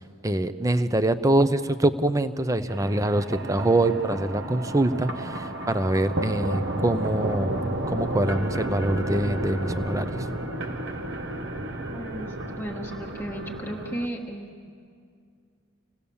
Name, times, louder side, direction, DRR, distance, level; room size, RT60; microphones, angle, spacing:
voice 1, 0.2-10.2, right 1 dB, 15° right, 11 dB, 0.6 m, -24 dB
sound 1, 2.7-14.1, right 1 dB, 55° right, 1.1 m, -32 dB
voice 2, 11.9-14.7, right 1 dB, 10° left, -1 dB, 1.4 m, -35 dB
26.5 x 18.0 x 7.1 m, 2.3 s
head